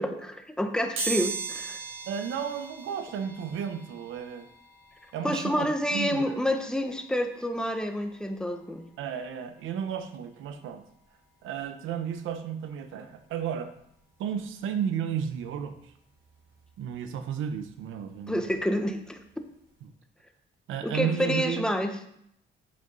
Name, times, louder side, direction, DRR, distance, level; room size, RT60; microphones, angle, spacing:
voice 1, 0.0-1.8 5.2-8.9 18.3-19.2 20.8-21.9, equal, 5° left, 5 dB, 1.2 m, -28 dB
sound 1, 1.0-11.6 12.1-12.2 13.3-13.4 13.7-15.8 16.2-18.8 19.1-19.3 19.6-19.7, right 4 dB, 70° right, 4.2 m, -41 dB
voice 2, 2.0-4.5 5.1-6.4 9.0-10.8 11.4-13.7 14.2-15.9 16.8-18.4 20.7-21.7, right 8 dB, 85° right, 9 dB, 0.9 m, -33 dB
8.8 x 7.9 x 4.0 m, 0.72 s
cardioid pair, 90°, 20 cm